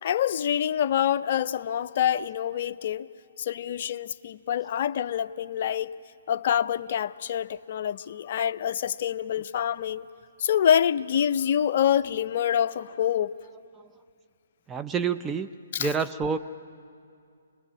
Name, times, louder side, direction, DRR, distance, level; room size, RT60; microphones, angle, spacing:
voice 1, 0.0-3.1 3.4-6.0 6.3-10.1 10.4-13.3 15.7-15.9, left 9 dB, 50° left, 0.5 m, -26 dB
voice 2, 14.7-15.5 15.8-16.4, right 5 dB, 15° right, 0.5 m, -28 dB
25.5 x 20.5 x 8.6 m
hypercardioid pair, 145°, 0 cm